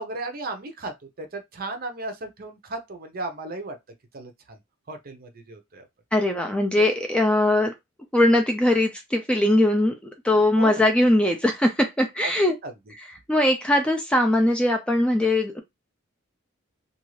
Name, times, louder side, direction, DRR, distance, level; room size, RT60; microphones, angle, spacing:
voice 1, 0.0-3.8 4.1-4.6 4.9-5.9 10.5-10.8 12.2-12.3 12.6-12.7, right 2 dB, 45° right, 0.7 m, -35 dB
voice 2, 6.1-7.7 8.1-9.9 10.2-12.5 13.3-15.6, left 1 dB, 5° left, 0.3 m, -20 dB
2.6 x 2.4 x 3.1 m
head